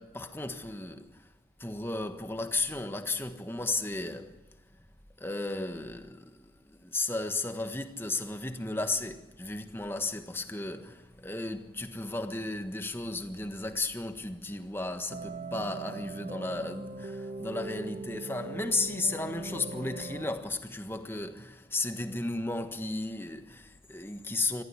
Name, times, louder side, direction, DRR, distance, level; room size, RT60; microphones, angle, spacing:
voice 1, 0.0-1.3 1.6-4.4 5.2-24.6, left 2 dB, 15° left, 1.4 m, -34 dB
sound 1, 15.1-20.3, right 3 dB, 45° right, 1.4 m, -40 dB
23.0 x 15.0 x 9.7 m
head